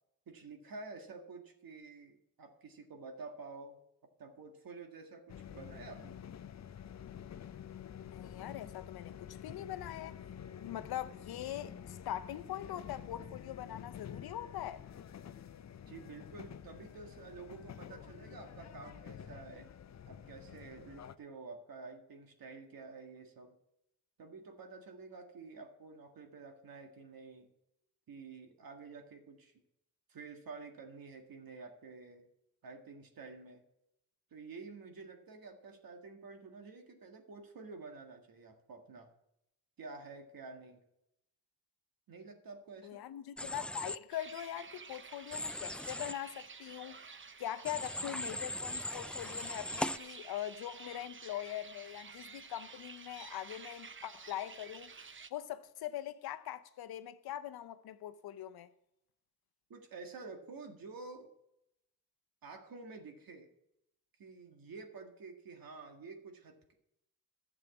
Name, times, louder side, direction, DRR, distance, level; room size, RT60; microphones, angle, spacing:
voice 1, 0.3-3.8 4.2-6.2 15.9-19.7 20.1-23.5 24.2-27.5 28.1-29.5 30.1-32.3 32.6-33.6 34.3-39.1 39.8-40.8 42.1-43.0 59.7-61.3 62.4-63.5 64.2-66.7, right 4 dB, 70° right, 1.9 m, -50 dB
sound 1, 5.3-21.2, left 9 dB, 45° left, 0.6 m, -49 dB
voice 2, 8.0-10.2 10.6-14.8 42.8-54.9 55.3-58.7, left 12 dB, 85° left, 0.7 m, -42 dB
Human voice / Train, 43.4-44.0 45.3-46.1 47.6-50.0, left 1 dB, 5° left, 0.4 m, -39 dB
sound 2, 44.1-55.3, right 5 dB, 35° right, 0.8 m, -52 dB
11.5 x 7.4 x 7.2 m
cardioid pair, 60°, 37 cm